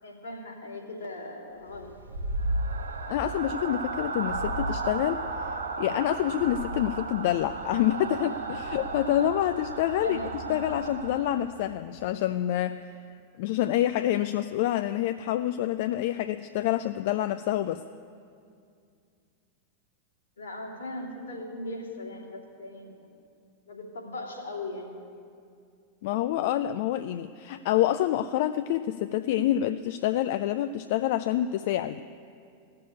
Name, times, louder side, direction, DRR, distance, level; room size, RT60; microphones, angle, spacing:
voice 1, 0.0-1.9 10.0-10.3 20.4-23.1 23.7-25.0, left 1 dB, 75° left, -4 dB, 2.8 m, -38 dB
sound 1, 1.7-11.7, right 3 dB, 75° right, 1.0 m, -34 dB
voice 2, 3.1-13.0 13.4-17.8 26.0-32.0, left 12 dB, 50° left, 11 dB, 0.3 m, -27 dB
16.0 x 6.7 x 8.5 m, 2.3 s
figure-of-eight pair, 90°, 0 cm